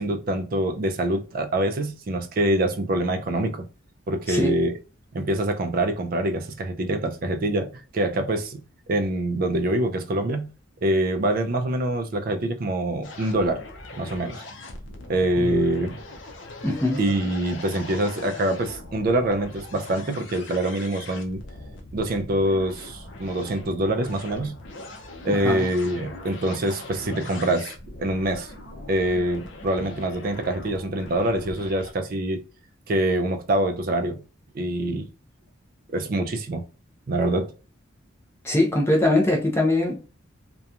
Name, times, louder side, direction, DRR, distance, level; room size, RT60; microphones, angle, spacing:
voice 1, 0.0-3.7 4.1-4.8 5.1-8.6 8.9-10.5 10.8-13.6 14.0-14.4 15.1-16.0 17.0-21.4 21.9-24.6 25.2-27.7 28.0-28.5 28.9-32.4 32.9-34.2 34.5-35.1 35.9-36.6 37.1-37.5, right 1 dB, 45° right, 0.4 m, -25 dB
sound 1, 13.0-31.9, left 2 dB, 65° left, 0.5 m, -41 dB
voice 2, 16.6-17.0 25.3-25.7 38.4-39.9, left 1 dB, 10° left, 0.5 m, -22 dB
2.8 x 2.2 x 2.4 m
head